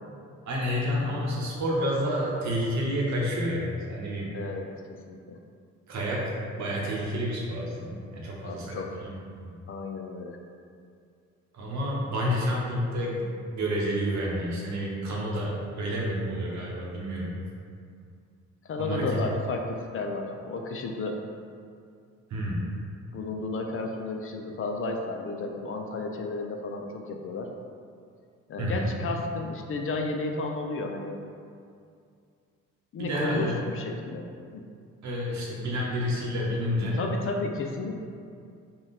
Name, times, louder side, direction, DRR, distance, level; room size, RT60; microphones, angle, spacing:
voice 1, 0.4-4.4 5.9-9.1 9.4-9.5 11.5-17.4 18.8-19.2 22.3-22.6 28.6-28.9 33.0-33.6 35.0-37.0, equal, 70° right, -4 dB, 1.0 m, -29 dB
voice 2, 4.3-5.4 8.4-8.9 9.7-10.4 18.6-21.2 23.1-27.5 28.5-31.2 32.9-34.2 34.5-34.6 37.0-38.0, left 3 dB, 45° left, 3 dB, 0.4 m, -32 dB
3.7 x 2.4 x 4.1 m, 2.3 s
cardioid pair, 90°, 30 cm